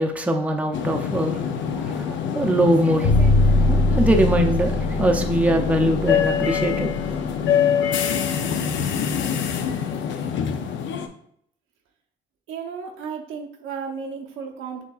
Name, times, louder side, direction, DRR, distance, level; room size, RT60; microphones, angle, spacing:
voice 1, 0.0-1.4 1.7-6.9, right 1 dB, 5° right, 4 dB, 0.5 m, -22 dB
sound 1, 0.7-11.1, left 8 dB, 70° left, 0.5 m, -25 dB
sound 2, 3.0-7.1, left 2 dB, 45° left, 0.9 m, -21 dB
voice 2, 12.5-14.8, right 6 dB, 85° right, 3 dB, 0.7 m, -33 dB
6.2 x 2.8 x 2.4 m, 0.68 s
cardioid pair, 90°, 20 cm